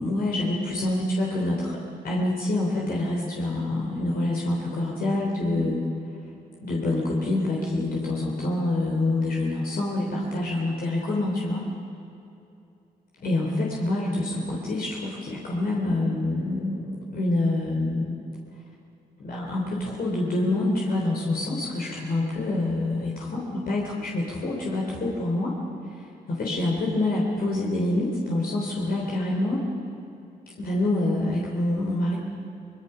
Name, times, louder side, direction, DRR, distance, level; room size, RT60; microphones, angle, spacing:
voice 1, 0.0-1.8 2.0-5.8 6.6-11.7 13.2-18.2 19.2-25.5 26.0-29.6 30.6-32.2, left 2 dB, 65° left, -3 dB, 3.5 m, -26 dB
24.0 x 21.0 x 5.7 m, 2.7 s
cardioid pair, 75°, 17 cm